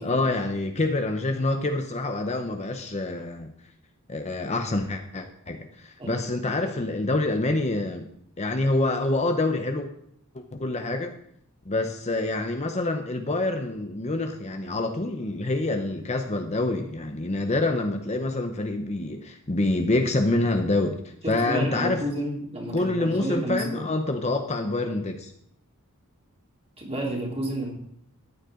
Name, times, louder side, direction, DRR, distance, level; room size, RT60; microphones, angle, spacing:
voice 1, 0.0-3.5 4.1-8.1 8.4-9.9 10.3-11.2 11.6-22.0 22.7-25.3, left 2 dB, 30° left, 5 dB, 0.8 m, -26 dB
voice 2, 21.2-23.9 26.8-27.7, right 1 dB, 25° right, -2 dB, 3.1 m, -31 dB
14.5 x 9.7 x 3.8 m, 0.68 s
head